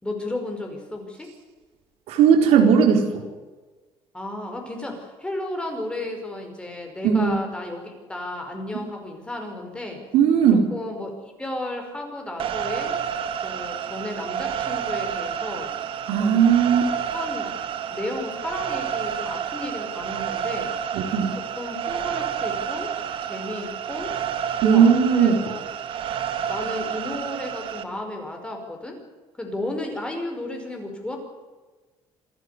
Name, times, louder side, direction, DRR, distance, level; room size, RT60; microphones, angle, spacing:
voice 1, 0.0-1.3 4.1-10.0 10.7-13.0 13.4-15.7 16.2-16.4 16.7-16.8 17.1-17.5 17.9-20.7 21.4-22.9 23.2-24.1 24.6-25.6 26.5-29.0 29.4-31.2, left 1 dB, 10° left, 3 dB, 5.3 m, -33 dB
voice 2, 2.1-3.2 7.0-7.3 10.1-10.7 16.1-16.9 20.9-21.3 24.6-25.4, right 7 dB, 85° right, 4 dB, 4.2 m, -17 dB
sound 1, 12.4-27.8, right 8 dB, 60° right, 1.8 m, -30 dB
27.0 x 12.0 x 9.8 m, 1.3 s
cardioid pair, 135°, 10 cm